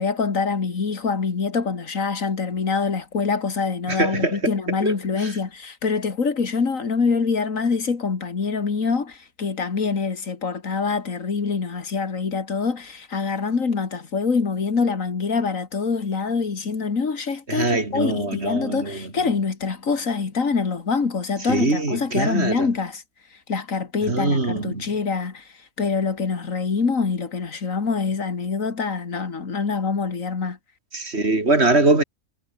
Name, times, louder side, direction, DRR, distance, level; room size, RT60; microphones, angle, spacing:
voice 1, 0.0-23.0 23.5-25.5 25.8-30.6, left 5 dB, 80° left, 2.6 m, -25 dB
voice 2, 3.9-4.5 4.8-4.9 17.5-19.1 21.5-22.7 24.1-24.8 30.9-32.0, right 2 dB, 55° right, 4.0 m, -22 dB
omnidirectional pair, 1.4 m